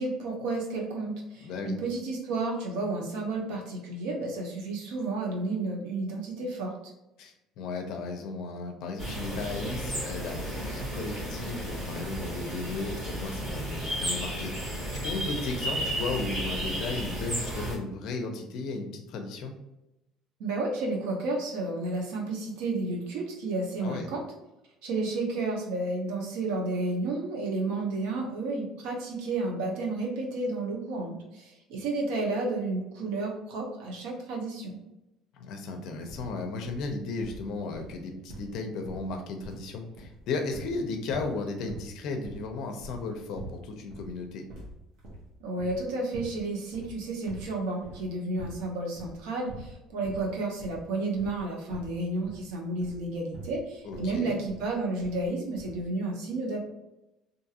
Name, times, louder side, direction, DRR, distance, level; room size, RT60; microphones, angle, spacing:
voice 1, 0.0-6.7 20.4-24.2 24.8-34.8 45.4-56.6, right 2 dB, 85° right, 0 dB, 0.7 m, -31 dB
voice 2, 1.4-1.7 7.2-19.5 23.8-24.1 35.3-44.4 53.8-54.5, left 3 dB, 50° left, 4 dB, 0.4 m, -35 dB
sound 1, 9.0-17.8, right 1 dB, 40° right, 1.1 m, -33 dB
sound 2, 36.1-36.3 36.6-36.9 37.2-38.6 38.8-39.7 39.9-40.8 41.1-41.4 41.7-41.9 42.2-43.6 43.9-44.1 44.5-45.8 46.1-46.4 46.7-47.5 47.8-48.1 48.4-48.7 48.9-49.2 49.5-49.7 50.0-50.3 50.6-50.8 51.1-51.4 51.7-52.4 52.8-53.1 53.3-53.6 53.9-54.2 54.5-54.7 55.0-55.3 55.6-55.8, right 1 dB, 55° right, 0.9 m, -44 dB
2.6 x 2.4 x 2.7 m, 0.93 s
cardioid pair, 175°, 0 cm